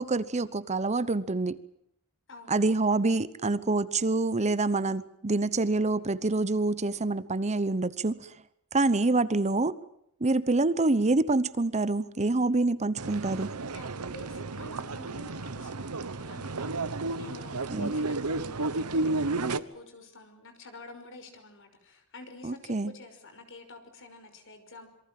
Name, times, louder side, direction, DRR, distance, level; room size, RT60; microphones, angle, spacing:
voice 1, 0.0-1.6 2.5-8.2 8.7-9.7 10.2-13.5 17.7-17.9 22.4-22.9, right 3 dB, 30° right, 16 dB, 0.9 m, -26 dB
sound 1, 13.0-19.6, right 3 dB, 80° right, 1.2 m, -32 dB
voice 2, 13.7-16.7 17.2-24.9, left 2 dB, 60° left, 8 dB, 5.5 m, -48 dB
27.0 x 23.0 x 7.6 m, 0.74 s
head